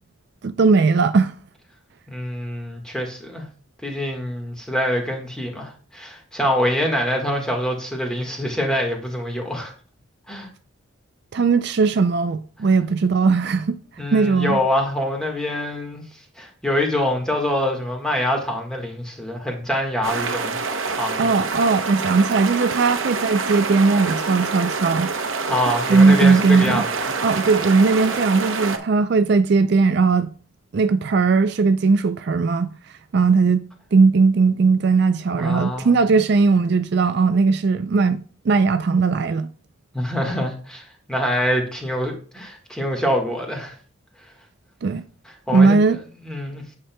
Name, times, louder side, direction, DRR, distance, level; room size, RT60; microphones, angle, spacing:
voice 1, 0.4-1.3 11.3-13.8 14.1-14.6 21.2-25.1 25.9-26.8 27.2-30.3 30.7-32.7 33.1-39.5 44.8-45.0 45.5-46.0, right 4 dB, 55° right, 0.4 m, -18 dB
voice 2, 2.1-3.5 3.8-9.7 10.3-10.5 14.0-16.0 16.4-20.6 20.9-21.2 25.5-27.1 35.3-36.0 39.9-43.7 45.5-45.8 46.2-46.6, left 1 dB, 5° left, 1.5 m, -25 dB
sound 1, 20.0-28.8, right 4 dB, 70° right, 0.8 m, -26 dB
9.1 x 5.9 x 2.2 m
head